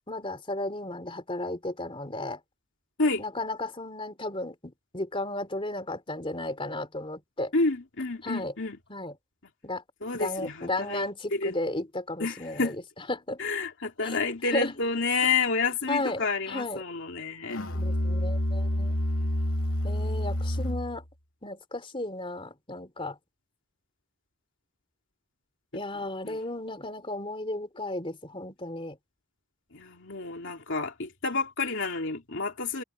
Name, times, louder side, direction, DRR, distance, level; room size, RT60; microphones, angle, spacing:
voice 1, 0.1-2.4 3.2-7.5 8.2-8.5 8.9-9.1 9.6-9.8 10.1-13.4 14.0-14.2 14.5-14.7 15.9-16.8 17.7-19.0 19.8-21.0 21.4-23.2 25.7-29.0, left 2 dB, 25° left, 3.6 m, -34 dB
voice 2, 7.5-8.8 10.0-11.1 11.3-11.5 12.2-12.7 13.4-17.6 26.2-26.4 29.7-32.8, left 4 dB, 55° left, 2.8 m, -29 dB
Musical instrument, 17.5-21.0, equal, 75° left, 2.8 m, -28 dB
head